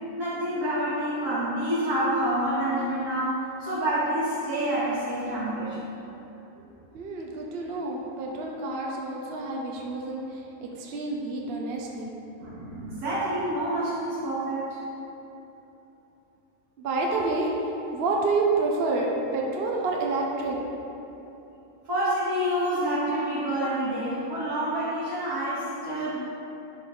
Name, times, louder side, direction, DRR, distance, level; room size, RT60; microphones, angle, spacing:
voice 1, 0.2-5.9 12.4-14.8 21.9-26.2, right 1 dB, 80° right, -8 dB, 2.4 m, -28 dB
voice 2, 6.9-12.1 16.8-17.5 17.9-20.8, right 3 dB, 50° right, -1 dB, 0.9 m, -28 dB
10.5 x 4.1 x 3.8 m, 2.9 s
omnidirectional pair, 1.6 m